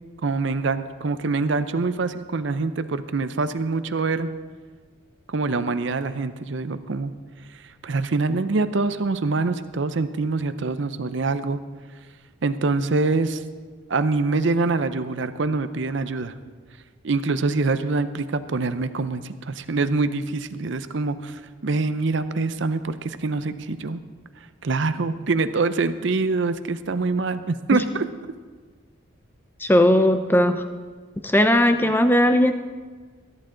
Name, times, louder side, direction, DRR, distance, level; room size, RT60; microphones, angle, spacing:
voice 1, 0.2-4.3 5.3-7.1 7.8-11.6 12.4-13.4 13.9-16.3 17.0-24.0 24.6-28.1, right 3 dB, 65° right, 11 dB, 0.6 m, -25 dB
voice 2, 29.6-30.6 31.2-32.5, left 1 dB, 10° left, 8 dB, 0.6 m, -18 dB
21.0 x 11.0 x 3.8 m, 1.5 s
head